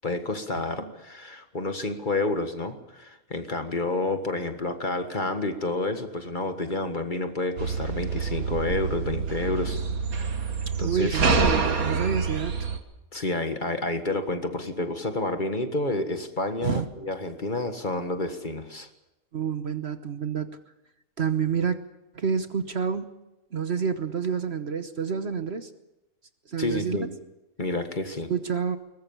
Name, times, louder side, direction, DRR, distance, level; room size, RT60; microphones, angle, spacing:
voice 1, 0.0-9.8 10.8-11.2 13.1-18.9 26.6-27.1 27.6-28.3, left 2 dB, 35° left, 7 dB, 1.7 m, -29 dB
voice 2, 0.6-0.9 10.8-12.7 16.6-16.8 19.3-20.6 21.2-21.8 22.1-23.1 23.5-25.7 26.5-27.1 28.3-28.8, right 6 dB, 50° right, 10 dB, 1.2 m, -28 dB
sound 1, 7.6-12.8, right 4 dB, 80° right, 2.1 m, -27 dB
22.0 x 20.0 x 7.1 m, 0.96 s
omnidirectional pair, 1.5 m